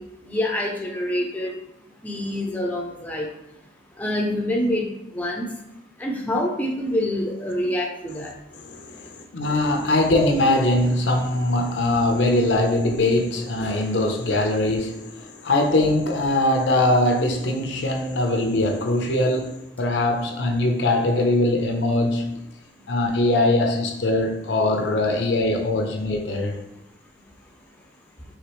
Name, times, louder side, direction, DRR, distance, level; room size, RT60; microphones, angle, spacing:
voice 1, 0.0-1.5 2.0-3.3 4.0-4.9 5.1-5.5 6.0-8.3, left 1 dB, 10° left, -1 dB, 0.5 m, -26 dB
voice 2, 8.5-22.4 22.9-26.6, left 1 dB, 75° left, 3 dB, 0.7 m, -22 dB
5.0 x 3.4 x 3.0 m, 0.84 s
head